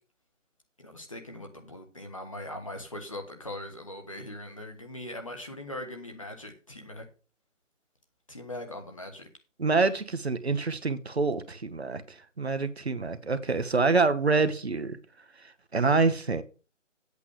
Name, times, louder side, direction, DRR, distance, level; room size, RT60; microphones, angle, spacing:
voice 1, 0.8-7.0 8.3-9.3, left 1 dB, 25° left, 1.4 m, -40 dB
voice 2, 9.6-12.0 12.4-15.0 15.7-16.4, right 4 dB, 55° right, 1.0 m, -26 dB
8.3 x 7.2 x 6.4 m
figure-of-eight pair, 175°, 38 cm